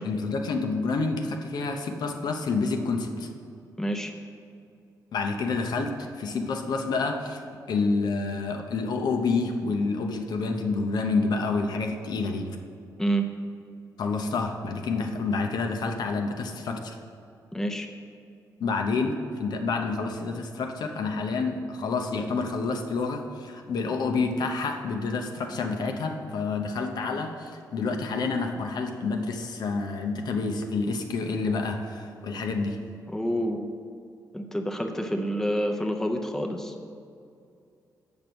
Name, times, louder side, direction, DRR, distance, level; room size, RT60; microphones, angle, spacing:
voice 1, 0.0-3.3 5.1-12.6 14.0-17.0 18.6-32.8, left 4 dB, 70° left, 4 dB, 0.7 m, -28 dB
voice 2, 3.8-4.1 13.0-13.2 17.5-17.9 33.1-33.7 34.3-36.7, right 1 dB, 5° left, 3 dB, 0.7 m, -28 dB
7.3 x 5.3 x 6.1 m, 2.5 s
cardioid pair, 95°, 7 cm